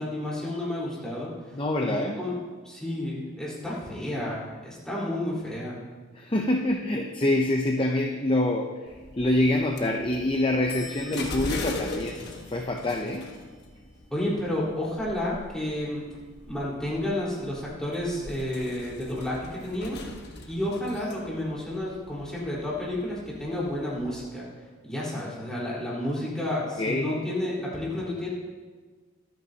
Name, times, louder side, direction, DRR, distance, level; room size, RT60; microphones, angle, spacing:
voice 1, 0.0-1.6 1.8-2.3 2.6-5.8 14.1-16.1 16.4-20.0 20.5-24.5 24.8-28.3, left 1 dB, 5° left, -7 dB, 4.1 m, -31 dB
voice 2, 1.5-2.2 6.1-8.7 9.2-13.3 26.8-27.1, left 1 dB, 25° left, 2 dB, 0.6 m, -26 dB
sound 1, 8.9-24.3, left 2 dB, 55° left, 1.4 m, -41 dB
23.5 x 9.3 x 2.9 m, 1.4 s
head